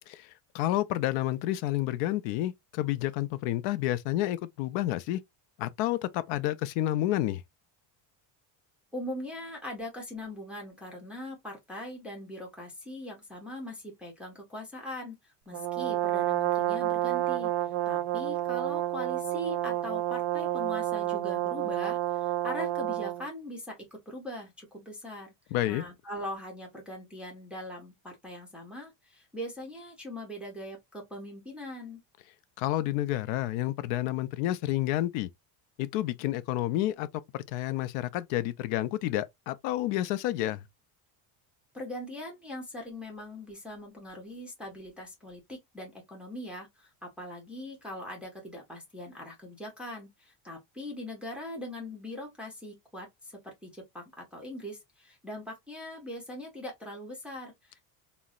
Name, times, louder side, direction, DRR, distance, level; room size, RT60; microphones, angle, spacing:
voice 1, 0.1-5.2 5.6-7.4 25.5-25.8 32.6-35.3 35.8-37.1 37.3-40.6, left 14 dB, 80° left, 0.5 m, -30 dB
voice 2, 8.9-17.5 17.9-23.8 24.1-25.3 25.6-32.0 41.7-57.8, left 1 dB, 5° right, 0.4 m, -41 dB
Brass instrument, 15.5-23.3, right 14 dB, 60° right, 0.5 m, -30 dB
3.8 x 2.1 x 2.3 m
cardioid pair, 175°, 45 cm